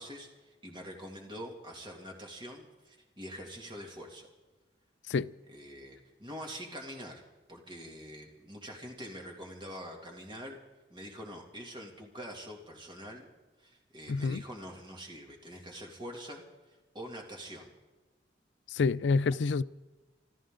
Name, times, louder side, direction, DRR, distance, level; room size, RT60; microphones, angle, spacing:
voice 1, 0.0-4.3 5.5-7.2 7.5-10.6 10.9-13.2 13.6-16.4 16.9-17.7, equal, 25° right, 2.5 m, -45 dB
voice 2, 14.1-14.4 18.7-19.6, left 4 dB, 80° left, 0.4 m, -27 dB
26.5 x 13.5 x 3.8 m
head